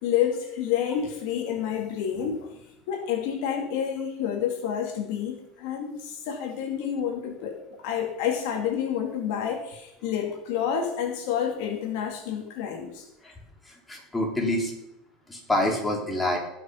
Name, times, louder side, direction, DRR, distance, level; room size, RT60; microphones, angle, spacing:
voice 1, 0.0-2.5 2.9-7.6 7.8-13.0, left 8 dB, 70° left, 4 dB, 2.2 m, -29 dB
voice 2, 13.7-14.7 15.3-16.4, left 1 dB, 10° left, -1 dB, 3.7 m, -27 dB
17.5 x 6.5 x 5.7 m, 0.86 s
supercardioid pair, 135°, 0 cm